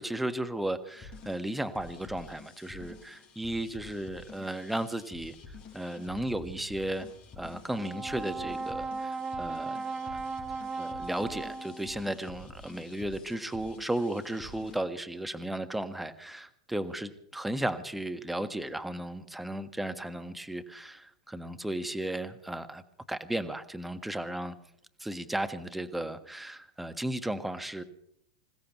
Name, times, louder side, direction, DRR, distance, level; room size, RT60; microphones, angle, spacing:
voice 1, 0.0-5.3 5.7-7.1 7.4-9.8 10.1-10.2 10.8-22.8 23.1-24.5 25.0-27.8, right 1 dB, 5° right, 9 dB, 1.4 m, -35 dB
sound 1, 0.9-14.8, left 3 dB, 35° left, 5.4 m, -50 dB
Brass instrument, 7.7-12.1, right 4 dB, 20° right, 1.0 m, -36 dB
27.0 x 16.5 x 3.1 m, 0.69 s
hypercardioid pair, 100°, 3 cm